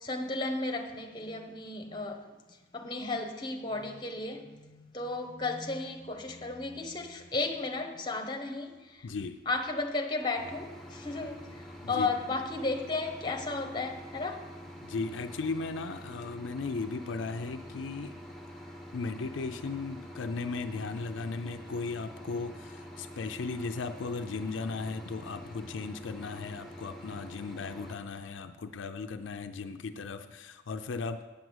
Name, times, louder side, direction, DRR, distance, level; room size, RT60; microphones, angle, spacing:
voice 1, 0.0-2.3 2.7-9.1 9.5-14.5, left 3 dB, 25° left, 1.0 m, -34 dB
voice 2, 9.0-9.4 11.8-12.1 14.8-18.2 18.9-31.2, left 4 dB, 75° left, 0.5 m, -36 dB
sound 1, 10.3-28.0, equal, ahead, 1.1 m, -46 dB
8.5 x 6.0 x 7.9 m
head